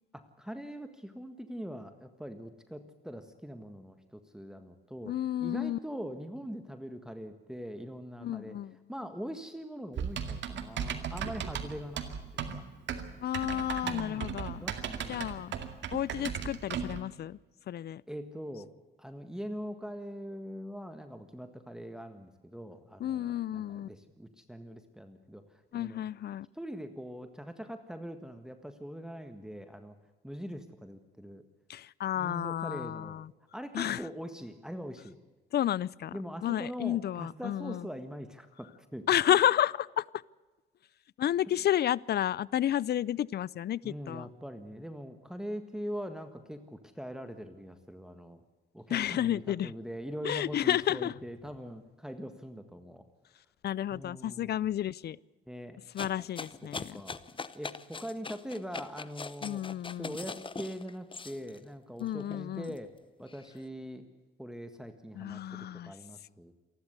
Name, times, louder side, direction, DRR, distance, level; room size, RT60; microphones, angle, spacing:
voice 1, 0.1-5.1 5.4-8.6 8.9-12.6 13.8-15.3 15.5-16.2 18.1-18.7 19.0-26.0 26.5-30.0 30.2-31.4 32.2-33.3 33.5-35.2 36.1-39.4 43.8-48.4 48.7-53.1 53.9-54.7 55.5-55.8 56.6-57.2 57.5-59.7 60.0-62.9 63.2-64.1 64.4-66.5, equal, 5° right, 7 dB, 1.6 m, -42 dB
voice 2, 5.1-5.8 8.2-8.8 13.2-14.7 15.1-15.5 15.9-17.4 17.7-18.0 23.0-23.9 25.7-26.5 31.7-33.3 33.7-34.0 35.5-37.9 39.1-40.0 41.2-44.3 48.9-49.7 50.2-51.1 53.6-55.2 55.9-57.0 59.4-60.2 62.0-62.7 65.1-65.9, left 11 dB, 55° left, 23 dB, 0.6 m, -31 dB
Typing, 10.0-17.0, right 7 dB, 65° right, 2.2 m, -36 dB
sound 1, 56.0-61.6 62.1-63.5, left 4 dB, 25° left, 0.9 m, -42 dB
28.0 x 11.5 x 8.2 m, 1.2 s
cardioid pair, 90°, 20 cm